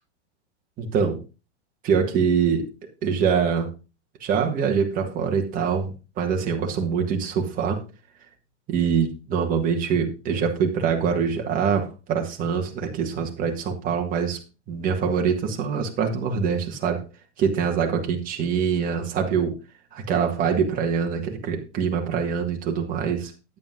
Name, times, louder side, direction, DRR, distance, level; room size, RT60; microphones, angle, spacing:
voice 1, 0.8-1.2 1.8-2.7 3.0-3.7 4.2-7.8 8.7-14.4 14.7-17.0 17.4-19.6 19.9-23.3, right 6 dB, 25° right, 2 dB, 1.7 m, -24 dB
9.5 x 8.5 x 3.7 m, 0.29 s
supercardioid pair, 160°, 35 cm